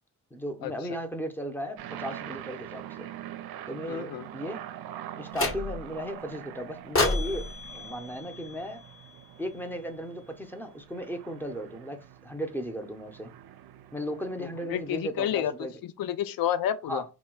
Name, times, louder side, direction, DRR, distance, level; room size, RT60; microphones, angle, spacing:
voice 1, 0.3-3.1 3.7-4.6 5.2-8.8 9.4-13.3 13.9-15.8 16.9-17.0, equal, 5° left, 0.8 m, -36 dB
sound 1, 1.8-15.5, right 12 dB, 65° right, 0.5 m, -44 dB
voice 2, 3.9-4.3 14.4-17.0, left 10 dB, 60° left, 0.6 m, -30 dB
sound 2, 5.3-6.0 6.9-9.2, left 2 dB, 35° left, 1.2 m, -30 dB
3.0 x 2.2 x 3.8 m
supercardioid pair, 50°, 40 cm